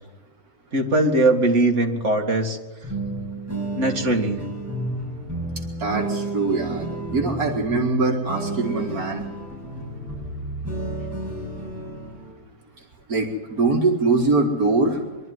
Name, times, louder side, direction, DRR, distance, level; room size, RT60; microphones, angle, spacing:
voice 1, 0.7-2.6 3.7-4.4, right 2 dB, 50° right, 3 dB, 2.4 m, -20 dB
sound 1, 2.8-12.3, right 2 dB, 10° right, 6.8 m, -31 dB
voice 2, 5.8-9.2 13.1-15.0, right 3 dB, 70° right, 2 dB, 2.4 m, -23 dB
23.5 x 12.5 x 9.5 m, 1.2 s
omnidirectional pair, 1.6 m